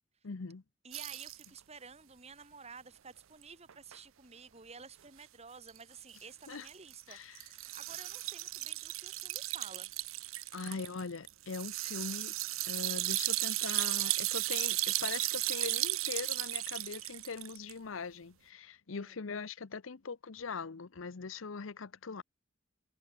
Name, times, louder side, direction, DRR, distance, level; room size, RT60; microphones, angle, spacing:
voice 1, 0.2-0.6 6.5-6.7 7.1-7.4 10.5-12.3 12.6-22.2, left 5 dB, 80° left, 0.7 m, -41 dB
voice 2, 0.8-9.9 18.9-19.2, right 5 dB, 30° right, 2.4 m, -52 dB
sound 1, 0.9-1.4 3.4-3.5 3.7-4.0 5.7-5.8 6.4-17.7, right 18 dB, 85° right, 0.6 m, -35 dB
head